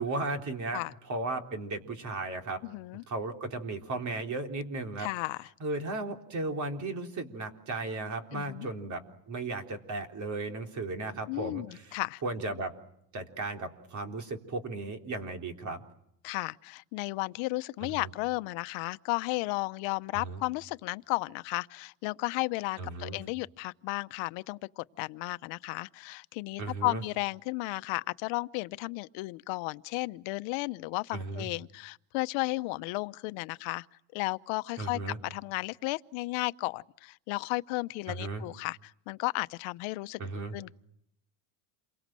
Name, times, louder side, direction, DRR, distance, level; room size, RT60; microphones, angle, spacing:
voice 1, 0.0-0.8 1.1-2.6 3.1-5.1 5.6-12.7 13.1-15.8 17.8-18.1 20.1-20.4 22.8-23.2 26.6-27.0 31.1-31.5 34.8-35.2 38.1-38.5 40.2-40.5, right 2 dB, 35° right, 3.8 m, -35 dB
voice 2, 2.6-3.0 5.0-5.5 8.3-8.7 11.3-12.2 16.2-33.9 34.1-40.3 40.5-40.7, left 23 dB, 75° left, 0.9 m, -34 dB
28.5 x 23.5 x 7.7 m
cardioid pair, 130°, 47 cm